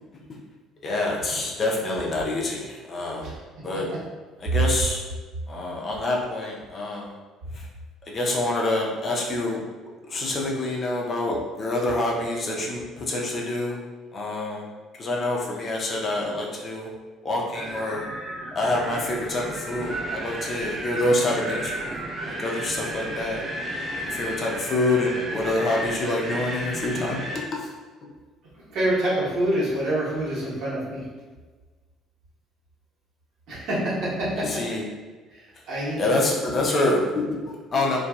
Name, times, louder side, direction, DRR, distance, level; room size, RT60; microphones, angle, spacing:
voice 1, 0.8-3.3 3.6-3.9 4.4-5.0 5.5-7.2 7.5-7.7 8.1-9.6 10.0-13.8 14.1-14.7 15.0-16.9 17.2-18.0 18.5-23.4 24.0-27.2 27.5-27.7 28.0-28.1 34.4-34.8 36.0-38.0, left 2 dB, 40° left, -2 dB, 0.6 m, -26 dB
Wind, 17.6-27.5, right 1 dB, 45° right, 0.5 m, -33 dB
voice 2, 28.7-31.0 33.5-34.4 35.3-36.0, right 1 dB, 60° right, -7 dB, 1.1 m, -26 dB
2.7 x 2.3 x 2.3 m, 1.3 s
hypercardioid pair, 55°, 0 cm